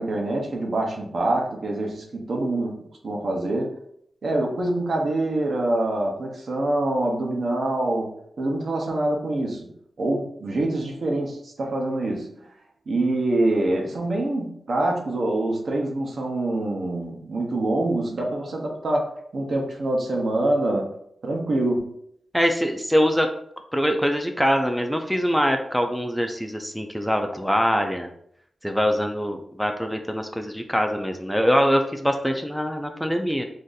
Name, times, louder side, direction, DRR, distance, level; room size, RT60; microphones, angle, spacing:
voice 1, 0.0-3.7 4.2-12.3 12.9-20.9 21.2-22.0, right 2 dB, 65° right, 1 dB, 0.7 m, -25 dB
voice 2, 22.3-23.3 23.7-28.1 28.6-33.4, equal, ahead, 4 dB, 0.3 m, -23 dB
2.6 x 2.5 x 3.8 m, 0.70 s
wide cardioid pair, 105°, 0 cm